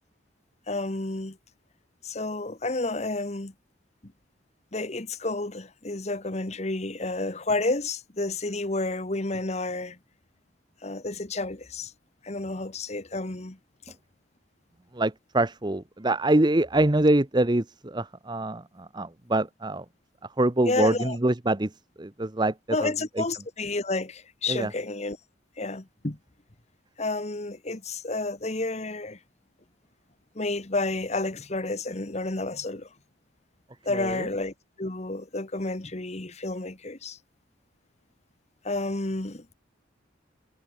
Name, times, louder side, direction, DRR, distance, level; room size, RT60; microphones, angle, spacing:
voice 1, 0.7-1.4 2.0-3.5 4.0-4.1 4.7-10.0 10.8-11.9 12.2-13.6 13.9-14.0 20.7-21.2 22.7-25.2 25.6-26.2 27.0-29.2 30.3-32.9 33.8-37.2 38.6-39.5, left 2 dB, 35° left, 1.4 m, -30 dB
voice 2, 14.9-19.8 20.4-21.7 22.0-22.5 22.8-22.9 23.2-23.3 24.5-24.7 33.9-34.3, right 1 dB, 25° right, 0.9 m, -25 dB
head